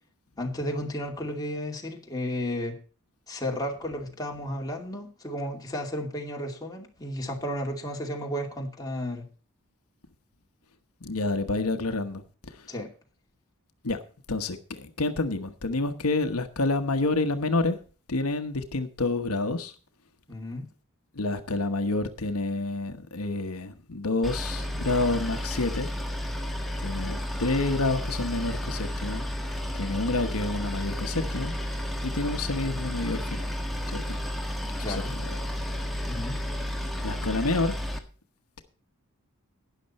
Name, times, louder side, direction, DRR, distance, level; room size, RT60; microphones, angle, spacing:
voice 1, 0.4-2.8 3.3-9.3 12.7-12.9 20.3-20.7 34.8-35.1 36.0-36.4, left 1 dB, 15° left, 0 dB, 2.5 m, -33 dB
voice 2, 11.0-12.2 13.8-14.0 14.3-17.8 18.1-19.7 21.2-25.9 26.8-29.3 29.7-31.5 32.0-33.4 33.9-34.2 34.8-35.3 37.0-37.7, left 2 dB, 80° left, 7 dB, 1.2 m, -28 dB
Boat Water vehicle, 24.2-38.0, left 1 dB, ahead, 1.5 m, -32 dB
12.0 x 10.0 x 4.2 m, 0.38 s
head